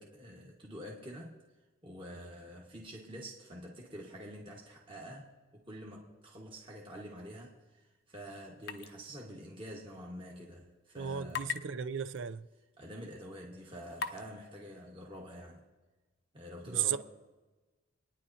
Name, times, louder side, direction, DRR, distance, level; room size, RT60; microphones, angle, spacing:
voice 1, 0.0-1.4 1.8-11.5 12.8-15.6 16.3-17.0, equal, 25° right, 1.5 m, -47 dB
sound 1, 8.6-8.9 9.2-9.3 11.3-11.6 12.2-12.3 13.0-13.1 14.0-14.2, left 6 dB, 50° left, 0.6 m, -36 dB
voice 2, 10.9-12.5 16.7-17.0, right 8 dB, 65° right, 0.4 m, -34 dB
27.0 x 9.9 x 2.8 m
head